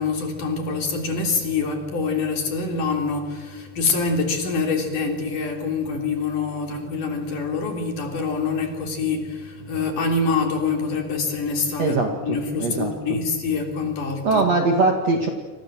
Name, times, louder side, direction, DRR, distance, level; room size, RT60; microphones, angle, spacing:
voice 1, 0.0-14.5, left 4 dB, 45° left, 4 dB, 4.6 m, -25 dB
voice 2, 12.6-12.9 14.2-15.3, right 3 dB, 50° right, 3 dB, 2.4 m, -20 dB
27.5 x 26.5 x 7.7 m, 1.3 s
omnidirectional pair, 5.3 m